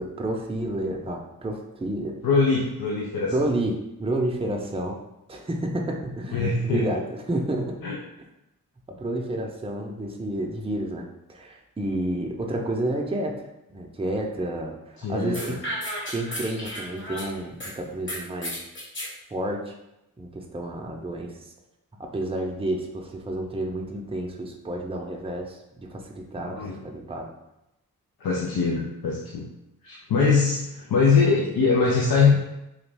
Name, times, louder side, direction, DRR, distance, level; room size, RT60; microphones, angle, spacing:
voice 1, 0.0-2.2 3.3-5.0 5.3-7.8 8.9-13.4 13.7-15.6 16.1-18.6 19.3-19.7 20.2-21.3 22.0-27.3, right 1 dB, 15° right, 1 dB, 0.5 m, -30 dB
voice 2, 2.2-3.4 6.3-7.0 7.8-8.0 15.0-15.6 26.5-26.8 28.2-29.5 29.8-32.4, left 4 dB, 80° left, -3 dB, 0.5 m, -22 dB
sound 1, 15.3-17.7 18.1-19.1, equal, 35° left, 1.2 m, -33 dB
3.1 x 2.3 x 3.3 m, 0.89 s
cardioid pair, 55°, 35 cm